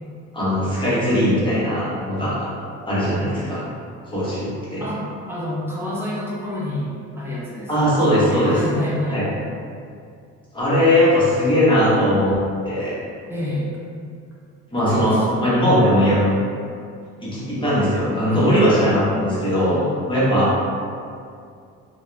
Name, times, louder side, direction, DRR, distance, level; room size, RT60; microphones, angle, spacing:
voice 1, 0.3-2.5 2.8-3.6 4.1-4.8 7.7-8.5 9.1-9.2 10.5-12.3 12.6-12.9 14.7-16.3 17.2-19.8 20.1-20.5, equal, 15° left, -10 dB, 0.8 m, -19 dB
voice 2, 4.8-9.2 13.3-13.7 14.9-15.8 18.3-18.6 19.6-20.0, left 1 dB, 10° right, -8 dB, 0.4 m, -29 dB
2.4 x 2.1 x 3.0 m, 2.3 s
cardioid pair, 135°, 29 cm